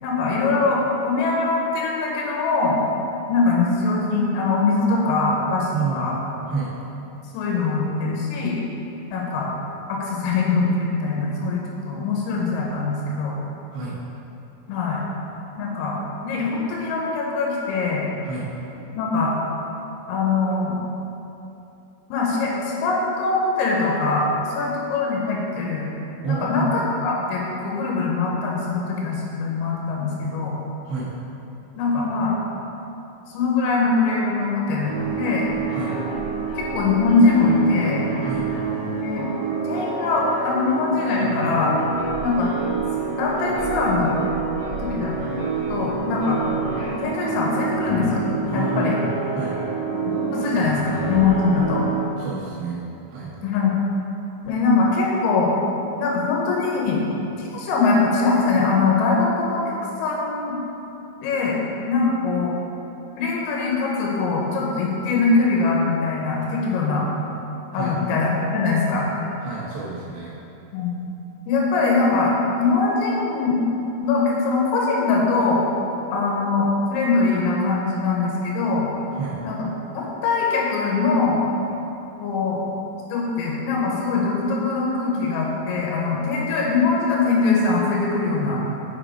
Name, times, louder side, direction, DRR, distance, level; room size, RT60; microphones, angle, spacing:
voice 1, 0.0-2.8 3.3-5.7 6.0-6.2 7.3-8.6 9.1-9.5 9.9-13.4 14.7-15.0 15.6-16.0 16.2-18.1 19.0-19.4 20.1-20.8 22.1-25.9 26.3-30.6 31.8-32.4 33.3-35.5 36.6-38.0 39.0-39.3 39.7-41.8 42.2-42.5 43.2-44.2 44.8-45.1 45.7-46.7 47.0-48.2 48.5-49.0 50.3-51.9 53.4-53.7 54.4-55.6 56.0-57.1 57.4-59.8 60.0-60.6 61.2-61.6 61.9-62.5 63.2-67.1 67.7-69.1 70.7-70.9 71.5-73.6 74.0-75.7 76.1-78.9 79.4-79.7 79.9-81.5 82.2-82.6 83.1-88.6, left 4 dB, 85° left, -3 dB, 3.6 m, -22 dB
voice 2, 5.7-6.0 6.5-6.7 13.7-14.0 18.3-18.5 26.2-26.7 30.9-31.1 35.7-36.0 38.2-38.5 48.5-49.6 52.2-52.8 53.1-53.3 67.7-68.0 69.4-70.3 79.1-79.4, right 4 dB, 75° right, -6 dB, 2.2 m, -29 dB
sound 1, 34.8-52.0, right 4 dB, 60° left, 1.5 m, -27 dB
7.4 x 5.0 x 5.0 m, 2.9 s
omnidirectional pair, 5.8 m